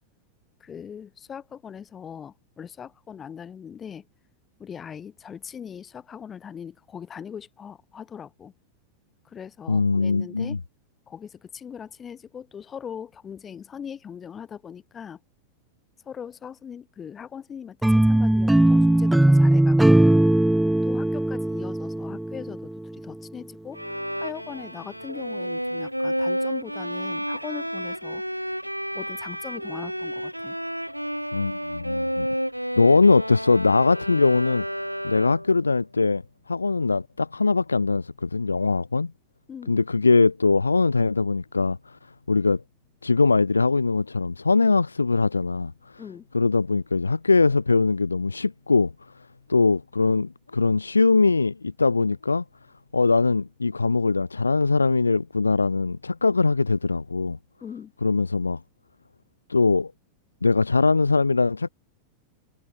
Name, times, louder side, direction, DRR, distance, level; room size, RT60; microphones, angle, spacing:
voice 1, 0.6-4.1 4.6-8.5 9.2-10.6 11.1-15.2 16.1-20.0 20.8-23.8 24.2-28.2 28.9-30.6 39.5-39.8 46.0-46.3 57.6-57.9, left 7 dB, 20° left, 5.6 m, -40 dB
voice 2, 9.7-10.6 31.3-32.3 32.8-34.6 35.0-36.2 36.5-39.1 39.7-41.8 42.3-42.6 43.0-45.7 46.3-48.9 49.5-52.4 52.9-57.4 58.0-58.6 59.5-59.9 60.4-61.7, left 4 dB, 80° left, 0.5 m, -21 dB
sound 1, 17.8-22.9, right 1 dB, 5° right, 1.0 m, -19 dB
Bowed string instrument, 23.7-35.6, equal, 90° right, 1.9 m, -31 dB
figure-of-eight pair, 90°, 0 cm